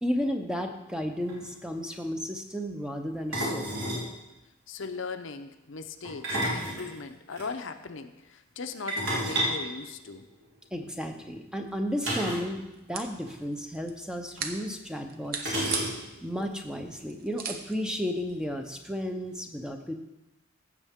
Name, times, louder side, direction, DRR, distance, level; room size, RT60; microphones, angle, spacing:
voice 1, 0.0-3.8 10.7-12.6 12.9-15.5 16.2-19.9, equal, 5° right, 4 dB, 0.7 m, -33 dB
sound 1, 1.0-1.1 1.3-1.5 3.3-4.1 6.0-7.5 8.9-10.5 12.0-12.5 12.8-12.9 13.2-13.4 14.4-14.5 15.4-16.2, right 1 dB, 65° right, 3.3 m, -31 dB
voice 2, 4.7-10.2, left 4 dB, 65° left, 8 dB, 0.7 m, -39 dB
sound 2, 11.6-18.9, right 6 dB, 45° right, 0.8 m, -41 dB
15.5 x 7.3 x 3.6 m, 0.96 s
head